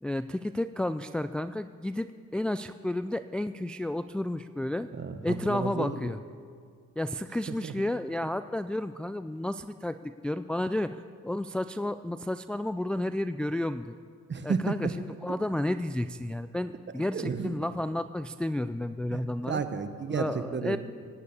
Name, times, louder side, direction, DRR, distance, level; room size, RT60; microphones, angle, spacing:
voice 1, 0.0-4.9 5.2-6.2 7.0-14.0 14.4-19.6 20.1-20.8, left 1 dB, 5° left, 11 dB, 0.3 m, -32 dB
voice 2, 4.9-6.1 7.6-7.7 14.3-14.9 17.1-17.6 19.1-20.8, right 5 dB, 40° right, 9 dB, 1.3 m, -32 dB
16.5 x 9.5 x 8.6 m, 2.2 s
cardioid pair, 90°, 30 cm